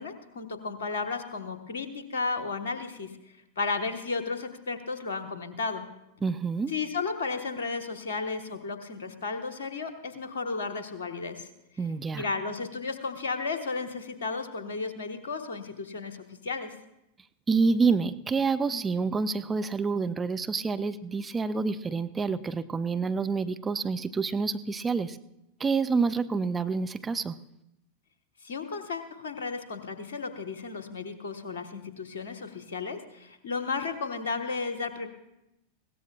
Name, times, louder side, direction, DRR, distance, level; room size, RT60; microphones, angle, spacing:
voice 1, 0.0-3.1 3.6-5.9 6.7-11.5 12.1-16.7 28.4-35.1, left 4 dB, 60° left, 7 dB, 1.4 m, -34 dB
voice 2, 6.2-6.7 11.8-12.2 17.5-25.2 25.6-27.3, right 4 dB, 15° right, 9 dB, 0.5 m, -28 dB
21.0 x 17.0 x 2.4 m, 0.88 s
figure-of-eight pair, 90°, 0 cm